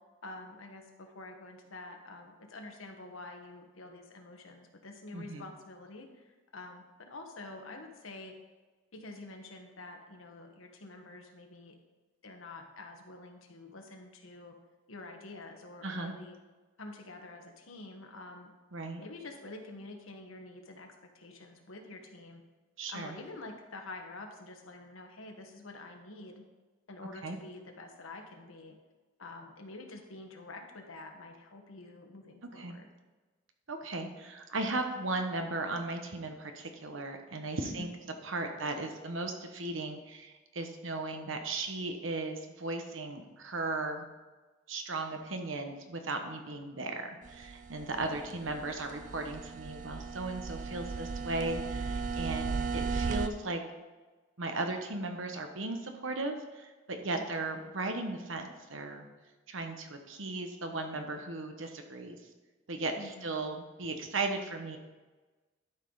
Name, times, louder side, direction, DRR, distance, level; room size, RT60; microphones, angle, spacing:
voice 1, 0.2-8.4 8.9-11.8 12.2-14.5 14.9-16.4 16.8-18.5 19.0-22.4 22.9-26.4 26.9-28.8 29.2-32.9 37.6-37.9 48.0-48.4 57.1-57.2 63.0-63.4, left 2 dB, 80° left, 4 dB, 1.3 m, -47 dB
voice 2, 5.1-5.4 15.8-16.1 18.7-19.0 22.8-23.2 27.2-27.4 32.6-32.8 33.7-37.9 38.2-44.1 44.7-53.6 54.4-59.1 59.5-62.2 62.7-64.8, right 2 dB, 70° right, 5 dB, 1.1 m, -36 dB
sound 1, 47.3-53.3, right 4 dB, 40° right, 0.4 m, -36 dB
12.0 x 5.5 x 3.9 m, 1.3 s
head